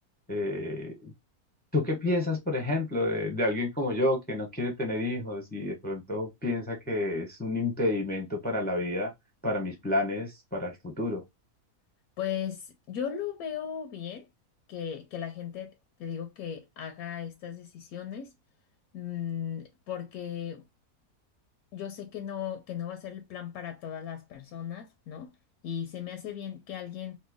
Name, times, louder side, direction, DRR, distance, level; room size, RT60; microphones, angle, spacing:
voice 1, 0.3-1.1 1.7-9.1 9.4-11.2, left 2 dB, 10° left, 0.5 m, -30 dB
voice 2, 12.2-14.3 14.7-18.3 18.9-20.6 21.7-25.3 25.6-27.2, left 9 dB, 80° left, 1.0 m, -37 dB
3.0 x 2.2 x 3.4 m
omnidirectional pair, 1.5 m